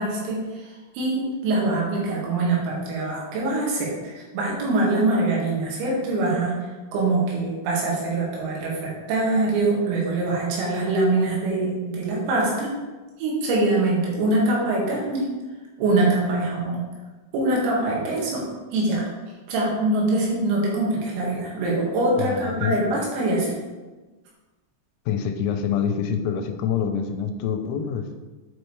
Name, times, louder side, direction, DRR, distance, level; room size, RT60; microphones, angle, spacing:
voice 1, 0.0-6.6 6.9-12.7 13.2-15.2 15.8-16.8 17.3-18.4 18.7-19.1 19.5-23.6, right 2 dB, 80° right, -4 dB, 4.3 m, -23 dB
voice 2, 22.2-22.8 25.1-28.1, left 7 dB, 85° left, 6 dB, 3.4 m, -26 dB
8.8 x 5.3 x 3.2 m, 1.2 s
omnidirectional pair, 6.0 m